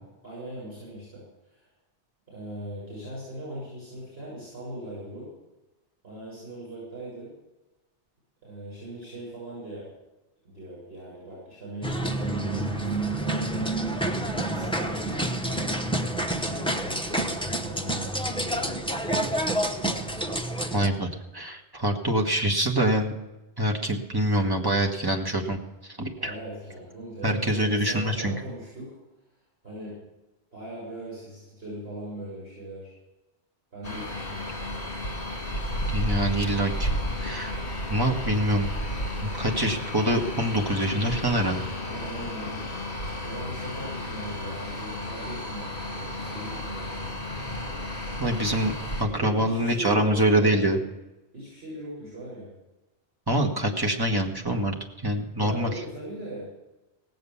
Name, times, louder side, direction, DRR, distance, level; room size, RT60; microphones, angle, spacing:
voice 1, 0.2-1.2 1.5-1.6 2.3-5.3 6.0-7.3 8.4-9.9 10.4-13.7 14.3-19.5 26.2-28.9 29.6-30.0 30.5-32.9 33.7-34.6 41.9-42.8 43.2-47.3 49.1-50.7 51.3-52.5 55.4-56.5, right 1 dB, 60° right, -7 dB, 7.4 m, -39 dB
sound 1, 11.8-20.9, right 1 dB, 5° left, 0.7 m, -28 dB
voice 2, 20.7-23.1 23.6-26.3 27.2-28.3 35.9-36.9 37.2-37.6 37.9-38.7 39.2-41.7 48.2-48.7 49.0-50.8 53.3-54.8 55.0-55.7, right 1 dB, 20° right, 1 dB, 1.7 m, -25 dB
sound 2, 33.8-49.0, left 1 dB, 50° left, 2.3 m, -33 dB
17.5 x 7.8 x 7.1 m, 1.0 s
omnidirectional pair, 1.2 m